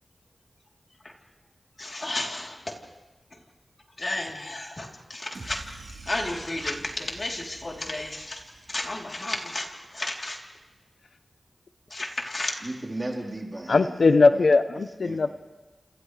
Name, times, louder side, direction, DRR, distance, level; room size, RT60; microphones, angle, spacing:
voice 1, 1.8-2.6 4.0-5.6 6.1-8.4 8.7-9.7 9.9-10.4 11.9-12.5, left 2 dB, 50° left, 0 dB, 3.4 m, -32 dB
sound 1, 5.3-9.7, right 2 dB, 90° right, 3.5 m, -47 dB
voice 2, 12.6-14.5 15.0-15.2, right 1 dB, 35° right, -1 dB, 4.0 m, -35 dB
voice 3, 13.7-15.3, left 3 dB, 80° left, 10 dB, 0.7 m, -20 dB
28.5 x 28.0 x 3.3 m, 1.2 s
cardioid pair, 50°, 0 cm